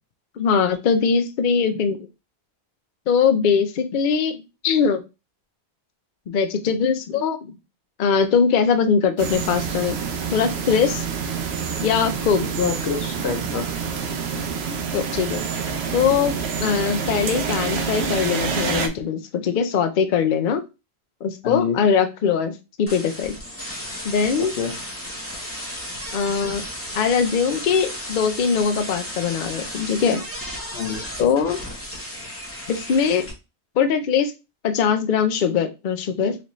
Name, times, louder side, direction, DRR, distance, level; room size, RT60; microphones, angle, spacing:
voice 1, 0.4-2.0 3.1-4.4 4.6-5.0 6.3-7.5 8.0-10.0 10.3-11.0 11.8-12.5 14.9-15.4 15.9-20.6 21.2-22.5 22.8-23.3 24.0-24.5 26.1-26.7 26.9-30.2 31.2-31.6 32.7-33.3 33.8-34.3 34.6-36.4, left 6 dB, 60° left, 7 dB, 0.6 m, -21 dB
sound 1, 9.2-18.9, right 6 dB, 80° right, 0.9 m, -27 dB
voice 2, 12.6-13.6 21.4-21.8 24.4-24.7 30.7-31.0, left 6 dB, 85° left, 6 dB, 1.0 m, -26 dB
sound 2, 22.9-33.3, equal, 15° left, 0.8 m, -34 dB
4.4 x 2.6 x 3.0 m, 0.27 s
omnidirectional pair, 1.1 m